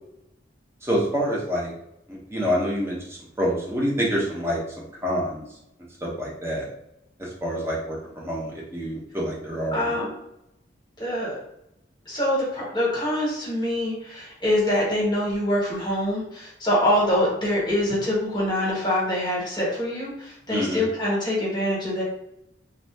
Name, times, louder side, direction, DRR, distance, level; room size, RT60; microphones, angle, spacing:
voice 1, 0.8-1.7 2.1-5.4 6.0-6.6 7.2-9.9 20.5-20.8, equal, 15° right, -5 dB, 0.8 m, -27 dB
voice 2, 9.7-10.1 11.0-11.4 12.1-22.0, left 1 dB, 25° left, -6 dB, 1.0 m, -24 dB
2.6 x 2.5 x 3.3 m, 0.81 s
head